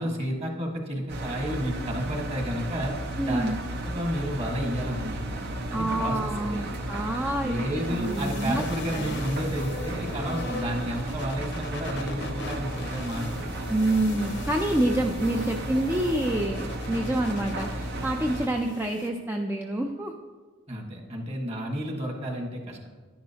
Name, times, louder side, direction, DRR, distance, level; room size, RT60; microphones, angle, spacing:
voice 1, 0.0-2.9 3.2-5.4 5.7-6.6 7.4-13.4 20.7-22.9, equal, 30° right, 2 dB, 1.5 m, -31 dB
Engine, 1.1-18.5, right 1 dB, 55° right, 0.9 m, -34 dB
voice 2, 3.2-3.6 5.7-8.6 8.9-9.2 13.7-20.1, right 1 dB, 10° right, 2 dB, 0.4 m, -27 dB
sound 1, 7.8-19.1, left 3 dB, 60° left, 0.8 m, -41 dB
10.5 x 10.5 x 2.9 m, 1.4 s
head